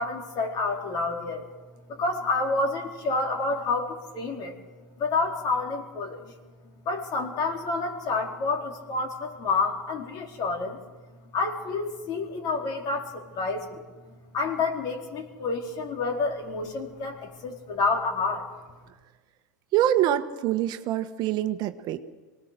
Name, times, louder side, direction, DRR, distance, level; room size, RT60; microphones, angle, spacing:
voice 1, 0.0-1.4 1.9-4.6 5.0-6.3 6.9-10.8 11.3-18.5, left 3 dB, 45° left, 2 dB, 4.1 m, -29 dB
voice 2, 19.7-22.0, right 12 dB, 45° right, 8 dB, 1.3 m, -25 dB
24.5 x 19.0 x 6.7 m, 1.4 s
hypercardioid pair, 100°, 10 cm